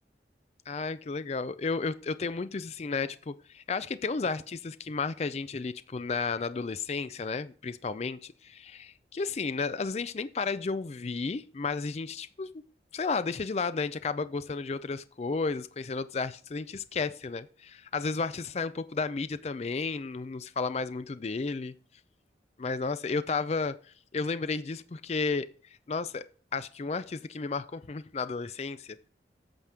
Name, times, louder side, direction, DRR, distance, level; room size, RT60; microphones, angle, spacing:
voice 1, 0.7-12.6 12.9-21.7 22.6-23.8 24.1-25.5 25.9-26.2 26.5-29.1, left 4 dB, 35° left, 0.4 m, -33 dB
8.9 x 6.0 x 4.9 m
head